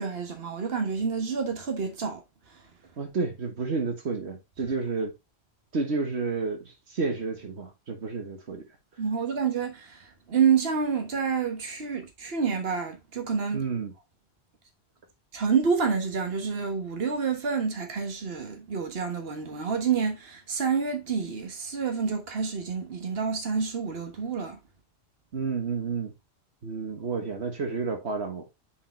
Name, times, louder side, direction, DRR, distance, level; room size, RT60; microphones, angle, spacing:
voice 1, 0.0-2.2 2.5-2.6 9.0-13.6 15.3-24.6, right 6 dB, 65° right, 1.6 m, -28 dB
voice 2, 3.0-5.1 5.7-8.7 13.5-13.9 25.3-26.1 26.6-28.5, right 4 dB, 80° right, 1.7 m, -30 dB
6.9 x 5.0 x 3.2 m
omnidirectional pair, 1.1 m